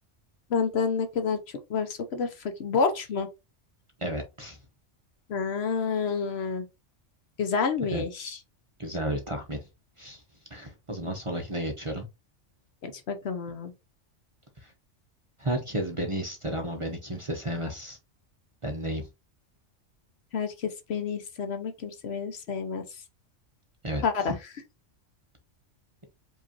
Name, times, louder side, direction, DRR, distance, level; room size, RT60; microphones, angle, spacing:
voice 1, 0.5-1.4 1.7-3.3 5.3-6.6 7.4-8.4 12.8-13.7 20.3-22.8 24.0-24.4, left 5 dB, 60° left, 0.9 m, -29 dB
voice 2, 4.0-4.6 7.9-8.0 8.8-9.7 10.0-10.2 10.5-12.1 14.6-14.7 15.4-18.0 18.6-19.1 23.8-24.3, right 1 dB, 30° right, 0.7 m, -32 dB
5.0 x 2.9 x 2.8 m
omnidirectional pair, 1.3 m